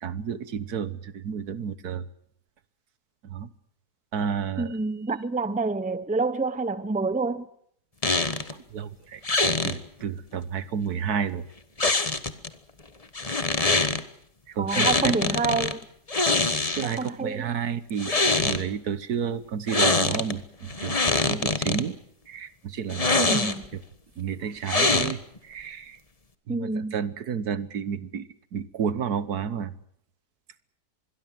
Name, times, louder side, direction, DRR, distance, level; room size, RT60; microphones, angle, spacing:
voice 1, 0.0-2.0 3.3-3.5 4.1-4.7 8.7-9.2 9.6-11.4 14.6-15.1 16.7-18.2 18.4-21.0 21.3-22.0 22.3-23.2 24.2-25.2 25.5-26.0 26.5-28.2 28.5-29.7, right 7 dB, 70° right, 1.7 m, -31 dB
voice 2, 4.6-7.5 14.6-15.8 16.8-17.6 23.2-23.6 26.5-26.9, right 3 dB, 5° right, 0.8 m, -28 dB
linoleum floor squeaks, 8.0-8.5 9.2-9.8 11.8-12.5 13.1-14.0 14.7-15.7 16.1-17.1 17.9-18.6 19.7-20.3 20.7-21.8 22.9-23.7 24.7-25.4, left 3 dB, 25° left, 1.4 m, -24 dB
25.5 x 22.0 x 7.6 m
omnidirectional pair, 1.8 m